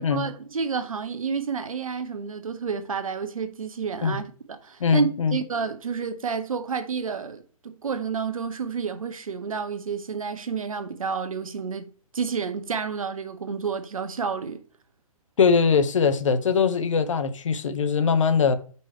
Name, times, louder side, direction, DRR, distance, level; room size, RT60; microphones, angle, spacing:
voice 1, 0.0-4.2 4.5-14.6, right 6 dB, 65° right, 0.8 m, -30 dB
voice 2, 4.8-5.4 15.4-18.5, left 5 dB, 55° left, 0.7 m, -21 dB
5.4 x 3.2 x 5.7 m
figure-of-eight pair, 125°, 19 cm